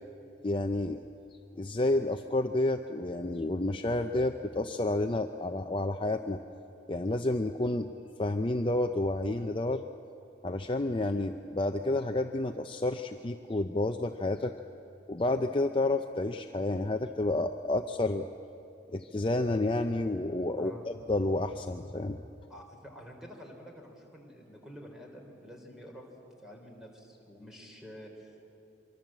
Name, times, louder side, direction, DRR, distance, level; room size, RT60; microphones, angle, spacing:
voice 1, 0.4-1.1 1.5-6.4 6.9-7.9 8.2-9.8 10.4-14.5 15.1-18.3 18.9-22.2, left 2 dB, 30° left, 6 dB, 0.5 m, -30 dB
voice 2, 20.6-20.9 22.5-26.0 26.4-28.5, equal, 5° right, 0 dB, 3.6 m, -48 dB
25.0 x 24.0 x 7.5 m, 2.8 s
head